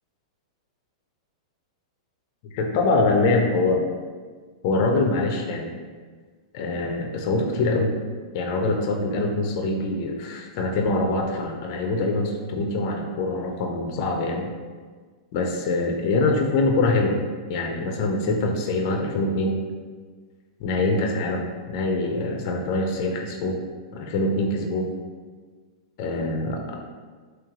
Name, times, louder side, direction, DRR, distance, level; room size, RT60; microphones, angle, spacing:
voice 1, 2.5-3.8 4.6-5.7 6.5-7.9 8.3-14.5 15.3-17.2 17.5-19.6 20.6-23.6 23.9-24.9 26.0-26.8, left 2 dB, 35° left, 1 dB, 0.4 m, -24 dB
3.1 x 3.0 x 3.6 m, 1.5 s
supercardioid pair, 175°, 3 cm